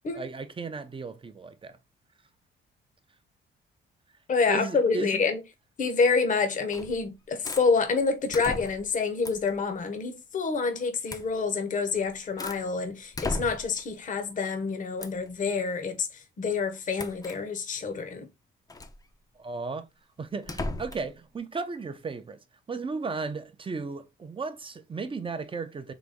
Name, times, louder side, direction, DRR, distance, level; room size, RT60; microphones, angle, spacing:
voice 1, 0.1-1.8 4.5-5.2 19.4-19.9 20.2-22.4 22.7-25.9, right 4 dB, 25° right, 0.6 m, -35 dB
voice 2, 4.3-5.4 5.8-18.3, left 4 dB, 40° left, 0.8 m, -27 dB
sound 1, 6.7-7.0 7.4-7.7 8.3-8.9 9.2-9.6 11.1-11.3 11.9-12.7 13.1-13.8 15.0-15.3 17.0-17.4 18.7-19.0 20.4-21.1, left 2 dB, 20° left, 0.6 m, -36 dB
4.0 x 3.0 x 3.5 m
cardioid pair, 90°, 20 cm